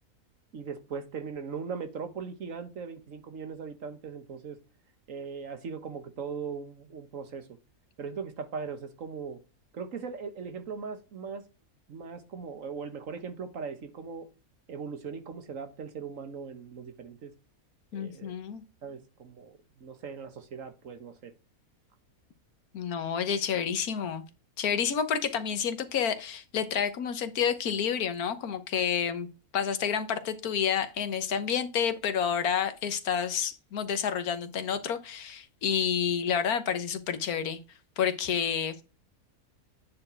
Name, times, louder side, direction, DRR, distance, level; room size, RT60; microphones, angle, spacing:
voice 1, 0.5-4.6 5.1-7.5 8.0-9.4 9.7-11.4 11.9-14.3 14.7-17.3 17.9-18.3 18.8-21.3, right 5 dB, 60° right, 1.6 m, -39 dB
voice 2, 17.9-18.6 22.7-24.2 24.6-29.3 29.5-37.6 38.0-38.8, left 7 dB, 85° left, 1.5 m, -29 dB
9.5 x 4.3 x 4.4 m
omnidirectional pair, 1.5 m